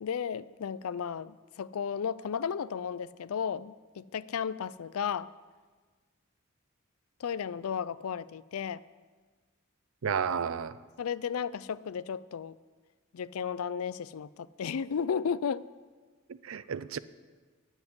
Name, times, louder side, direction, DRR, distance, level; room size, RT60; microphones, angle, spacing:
voice 1, 0.0-5.3 7.2-8.8 11.0-12.6 13.1-15.6, left 7 dB, 90° left, 18 dB, 0.4 m, -34 dB
voice 2, 10.0-10.8 16.3-17.0, right 6 dB, 70° right, 16 dB, 0.5 m, -32 dB
10.5 x 7.3 x 9.6 m, 1.4 s
head